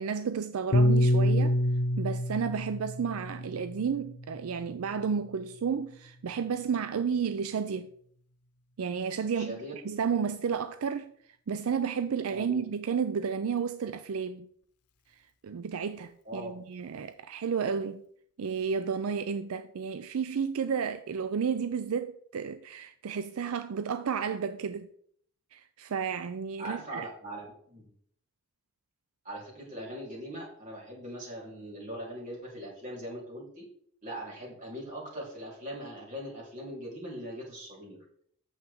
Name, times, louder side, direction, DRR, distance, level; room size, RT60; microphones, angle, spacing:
voice 1, 0.0-1.6 2.0-7.9 8.8-9.6 9.8-11.1 11.5-14.5 15.4-18.0 18.4-24.9 25.5-27.0, right 6 dB, 75° right, 0.4 m, -32 dB
Piano, 0.7-5.2, left 1 dB, 90° left, 0.8 m, -27 dB
voice 2, 9.3-9.7 12.3-12.6 16.3-16.5 26.6-27.8 29.2-33.7 34.0-38.0, right 1 dB, 35° right, 3.5 m, -41 dB
8.9 x 7.3 x 3.6 m
head